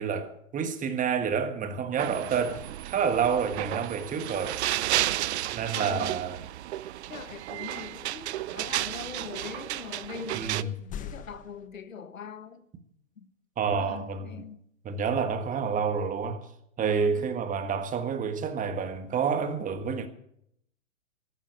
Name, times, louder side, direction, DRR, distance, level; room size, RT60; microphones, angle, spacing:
voice 1, 0.0-4.6 5.5-6.4 10.3-10.8 13.6-14.4 14.8-16.4 16.8-20.1, right 6 dB, 20° right, 1.5 m, -29 dB
sound 1, 2.0-10.6, right 14 dB, 60° right, 0.7 m, -32 dB
voice 2, 5.7-6.1 7.1-12.6 13.2-13.3 13.8-14.6 16.8-17.3, left 6 dB, 90° left, 1.4 m, -42 dB
sound 2, 10.5-11.7, left 8 dB, 20° left, 1.0 m, -41 dB
14.0 x 11.5 x 6.9 m
hypercardioid pair, 115°, 39 cm